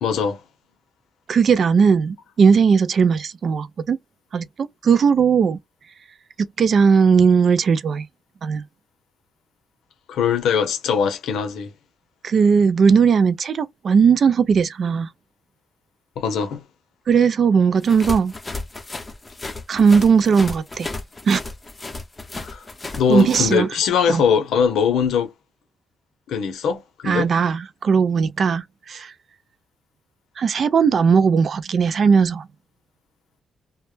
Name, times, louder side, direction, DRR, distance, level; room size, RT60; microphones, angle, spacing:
voice 1, 0.0-0.4 10.1-11.7 16.2-16.6 22.4-22.6 23.0-25.3 26.3-27.3, left 7 dB, 85° left, 0.6 m, -21 dB
voice 2, 1.3-4.0 4.3-5.6 6.4-8.1 8.4-8.6 12.2-15.1 17.1-18.3 19.7-20.9 21.3-21.4 23.1-23.7 24.1-24.2 27.1-29.1 30.4-32.5, right 6 dB, 55° right, 0.3 m, -18 dB
sound 1, 17.8-23.5, left 2 dB, 20° left, 0.5 m, -33 dB
2.1 x 2.0 x 3.1 m
cardioid pair, 90°, 0 cm